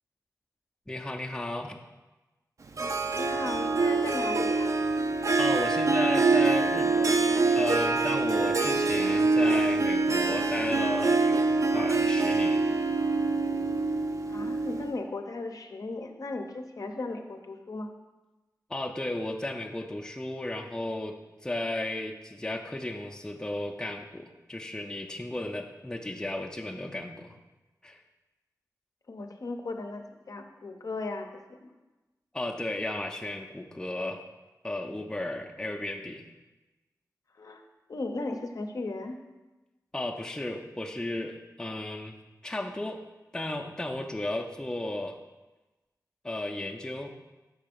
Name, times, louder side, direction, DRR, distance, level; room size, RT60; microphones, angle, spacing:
voice 1, 0.9-1.8 5.4-7.2 7.5-12.7 18.7-27.4 27.8-28.0 32.3-34.2 34.6-36.3 39.9-42.2 42.4-43.0 43.3-45.2 46.2-47.2, left 1 dB, 10° left, 3 dB, 0.4 m, -34 dB
Harp, 2.8-15.0, right 3 dB, 50° right, 0.4 m, -25 dB
voice 2, 3.1-4.7 14.3-17.9 29.1-31.7 37.4-37.6 37.9-39.2, left 2 dB, 60° left, 4 dB, 0.6 m, -36 dB
5.5 x 3.3 x 5.1 m, 1.1 s
wide cardioid pair, 70°, 7 cm